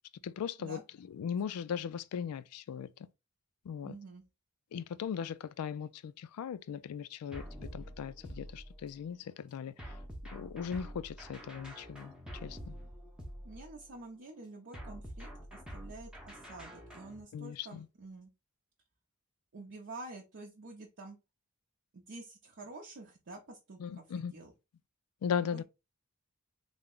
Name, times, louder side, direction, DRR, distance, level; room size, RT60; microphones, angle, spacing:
voice 1, 0.2-2.9 3.6-4.0 4.7-10.0 10.3-12.1 12.4-12.7 17.3-17.9 23.8-24.3 25.2-25.6, left 7 dB, 90° left, 0.3 m, -38 dB
voice 2, 3.8-4.2 13.4-18.3 19.5-21.2 21.9-24.5 25.4-25.6, right 2 dB, 55° right, 0.6 m, -49 dB
sound 1, 7.3-9.0 9.8-14.0 14.7-17.2, equal, 5° right, 0.6 m, -47 dB
3.4 x 2.1 x 3.6 m
head